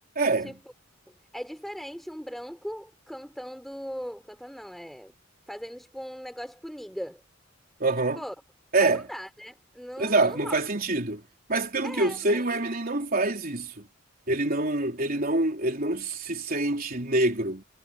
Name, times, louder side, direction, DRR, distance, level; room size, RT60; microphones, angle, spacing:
voice 1, 0.2-0.6 7.8-8.2 8.7-9.0 10.0-11.2 11.5-13.8 14.3-17.6, right 2 dB, 50° right, 3.9 m, -26 dB
voice 2, 1.3-5.1 5.5-7.2 8.1-8.3 8.8-10.6 11.8-12.5, equal, ahead, 6.3 m, -39 dB
head